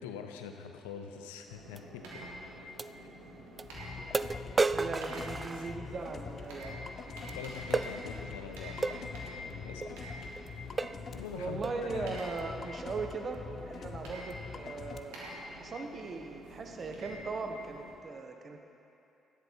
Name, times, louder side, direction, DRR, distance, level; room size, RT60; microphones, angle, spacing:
voice 1, 0.0-2.2 3.0-3.3 4.8-4.9 5.4-5.5 7.2-10.0 11.1-12.2 13.8-13.9, left 7 dB, 85° left, 5 dB, 0.7 m, -44 dB
sound 1, 1.5-17.9, equal, 85° right, 1.8 m, -47 dB
sound 2, 1.8-1.9 2.8-2.9 3.6-3.7 4.1-6.1 7.7-7.9 8.8-9.0 9.8-10.0 10.4-10.5 10.8-11.1 11.6-11.9, right 3 dB, 30° right, 0.3 m, -32 dB
sound 3, 3.6-15.0, left 5 dB, 55° left, 0.7 m, -45 dB
voice 2, 4.7-6.9 11.3-15.2 15.5-18.7, right 4 dB, 50° right, 4 dB, 1.1 m, -39 dB
13.0 x 10.0 x 4.6 m, 2.9 s
hypercardioid pair, 50°, 0 cm